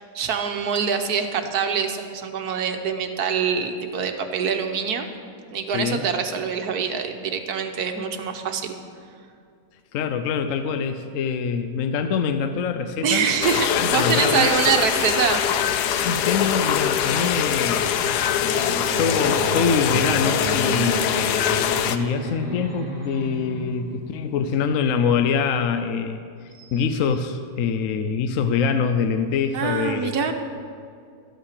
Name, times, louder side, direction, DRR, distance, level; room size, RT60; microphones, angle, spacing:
voice 1, 0.0-5.1 5.5-8.7 13.0-15.4 26.5-26.7 29.5-30.3, right 6 dB, 75° right, 6 dB, 1.4 m, -24 dB
voice 2, 5.7-6.0 9.9-13.3 13.7-14.5 16.0-17.9 18.4-21.0 21.9-26.2 26.7-30.3, left 6 dB, 65° left, 8 dB, 0.9 m, -24 dB
sound 1, 13.4-22.0, left 9 dB, 85° left, 1.2 m, -23 dB
sound 2, 17.6-24.6, right 1 dB, 30° left, 2.1 m, -32 dB
12.5 x 8.6 x 6.6 m, 2.3 s
omnidirectional pair, 1.7 m